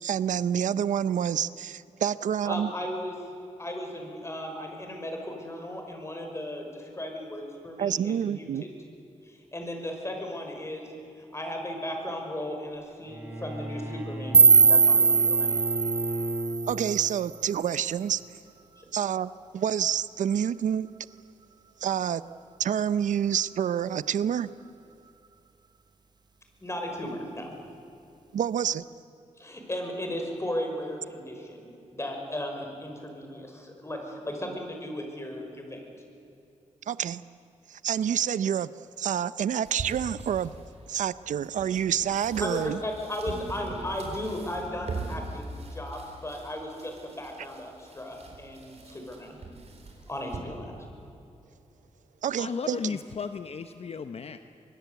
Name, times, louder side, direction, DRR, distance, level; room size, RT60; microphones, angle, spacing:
voice 1, 0.0-2.7 7.8-8.6 16.7-18.2 18.9-20.9 21.8-22.2 22.6-24.5 28.3-28.8 36.9-37.2 37.7-38.7 39.0-40.5 40.9-42.8 52.2-52.8, right 9 dB, 85° right, 17 dB, 0.6 m, -28 dB
voice 2, 2.4-3.1 3.6-8.7 9.2-10.9 11.2-15.5 18.8-18.9 26.6-27.5 29.4-35.8 42.4-49.4 50.1-50.7, left 1 dB, 20° left, 3 dB, 5.7 m, -36 dB
Bowed string instrument, 13.0-17.2, right 1 dB, 15° right, 6.7 m, -34 dB
sound 1, 14.3-17.4, right 5 dB, 35° right, 0.5 m, -20 dB
sound 2, 39.6-50.4, right 3 dB, 55° right, 4.4 m, -41 dB
voice 3, 52.4-54.4, left 5 dB, 55° left, 9 dB, 0.9 m, -34 dB
24.0 x 22.5 x 8.3 m, 2.8 s
cardioid pair, 90°, 13 cm